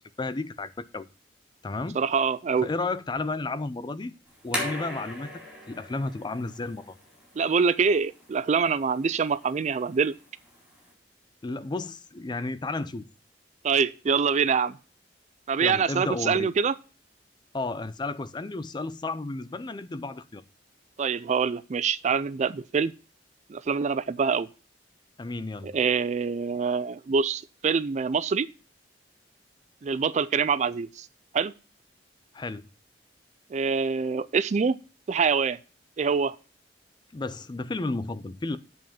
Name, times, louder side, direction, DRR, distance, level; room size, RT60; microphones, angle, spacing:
voice 1, 0.2-1.1 1.6-2.0 2.6-4.1 4.4-5.3 5.7-7.0 11.4-13.1 15.6-16.5 17.5-20.4 25.2-25.7 32.3-32.7 37.1-38.6, left 3 dB, 25° left, 0.4 m, -32 dB
voice 2, 1.9-2.7 7.4-10.1 13.6-14.8 15.5-16.7 21.0-22.9 23.5-24.5 25.6-28.5 29.8-31.1 31.3-31.5 33.5-34.8 35.1-35.6 36.0-36.4, right 5 dB, 40° right, 0.4 m, -25 dB
sound 1, 4.3-10.9, equal, 5° right, 3.7 m, -40 dB
8.1 x 5.1 x 7.1 m
head